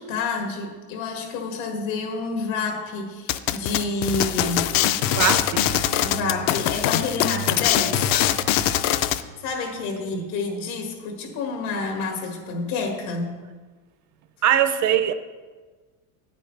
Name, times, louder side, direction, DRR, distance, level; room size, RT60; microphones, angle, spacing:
voice 1, 0.0-4.8 6.0-8.0 9.4-13.5, left 4 dB, 85° left, 3 dB, 1.9 m, -29 dB
sound 1, 3.3-9.2, left 12 dB, 55° left, 0.5 m, -22 dB
sound 2, 4.1-10.1, right 8 dB, 85° right, 0.8 m, -38 dB
voice 2, 5.1-5.7 10.1-10.3 14.4-15.1, right 10 dB, 45° right, 11 dB, 0.6 m, -21 dB
9.5 x 9.3 x 3.2 m, 1.4 s
cardioid pair, 130°, 40 cm